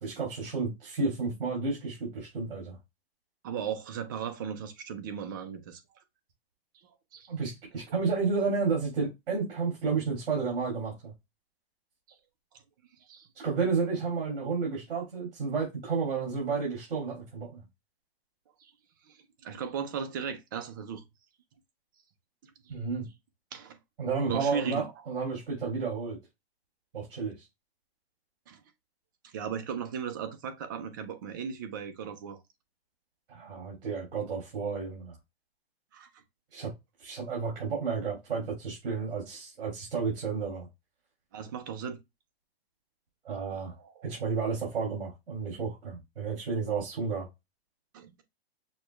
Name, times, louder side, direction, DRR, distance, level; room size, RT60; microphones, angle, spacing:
voice 1, 0.0-2.8 7.3-11.1 13.4-17.6 22.7-23.1 24.0-26.2 26.9-27.4 33.3-35.1 36.5-36.7 37.0-40.7 43.2-43.7 44.0-47.3, right 5 dB, 60° right, 2.5 m, -31 dB
voice 2, 3.4-5.8 7.1-7.3 13.1-13.3 18.6-18.7 19.4-21.0 22.4-22.5 23.5-23.8 24.3-24.9 28.5-28.6 29.2-32.4 35.9-36.1 41.3-42.0 43.8-44.2 47.9-48.1, right 7 dB, 20° right, 0.4 m, -36 dB
6.3 x 2.2 x 3.1 m
hypercardioid pair, 160°, 32 cm